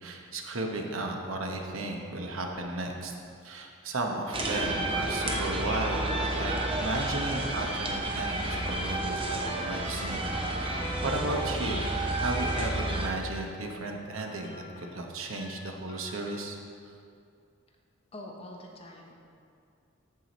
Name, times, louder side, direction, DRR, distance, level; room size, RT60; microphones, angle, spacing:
voice 1, 0.0-3.1 3.4-10.3 10.6-16.6 16.8-16.9, right 2 dB, 75° right, 2 dB, 0.9 m, -34 dB
sound 1, 4.3-13.1, right 2 dB, 25° right, 0.7 m, -31 dB
sound 2, 4.9-6.9 7.3-7.4 7.8-9.9 10.3-10.6 10.9-11.6 12.0-12.8 13.2-13.3 13.7-13.8 14.2-15.0 15.3-16.4, left 1 dB, 70° left, 2.1 m, -45 dB
voice 2, 18.1-19.1, left 1 dB, 25° left, 0 dB, 0.9 m, -44 dB
14.0 x 4.8 x 4.0 m, 2.4 s
head